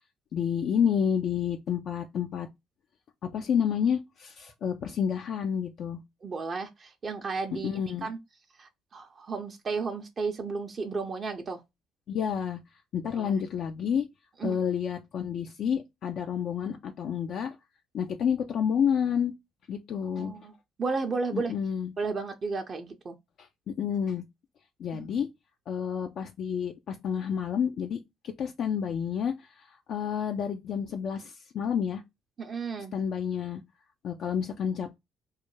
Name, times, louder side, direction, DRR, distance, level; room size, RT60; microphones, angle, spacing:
voice 1, 0.3-2.5 3.3-6.0 7.6-8.1 12.1-12.6 12.9-14.1 14.4-17.6 17.9-19.3 19.7-20.3 21.3-21.9 23.4-24.2 24.8-25.3 25.7-28.0 28.4-32.0 32.9-33.6 34.0-35.0, left 8 dB, 60° left, 0.3 m, -29 dB
voice 2, 6.2-7.7 8.0-8.2 8.6-11.6 13.1-13.4 14.4-14.6 20.2-20.5 20.8-21.5 22.0-23.2 24.9-25.1 32.4-32.9, right 4 dB, 45° right, 0.5 m, -33 dB
2.3 x 2.1 x 3.0 m
hypercardioid pair, 55°, 0 cm